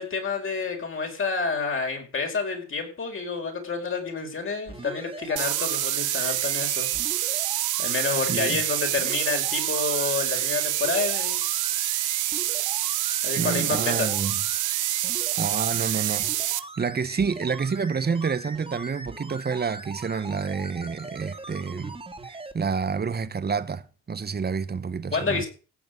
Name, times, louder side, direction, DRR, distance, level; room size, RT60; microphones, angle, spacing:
voice 1, 0.0-6.9 7.3-11.4 13.2-14.1 25.1-25.5, left 4 dB, 45° left, 5.4 m, -29 dB
sound 1, 4.7-22.5 23.1-23.2, right 2 dB, 15° right, 2.7 m, -41 dB
sound 2, 5.4-16.6, right 14 dB, 80° right, 1.0 m, -27 dB
voice 2, 8.3-8.6 13.4-14.4 15.4-16.3 16.8-22.0 22.3-25.4, right 5 dB, 30° right, 1.4 m, -28 dB
16.0 x 6.3 x 9.5 m
cardioid pair, 90°, 30 cm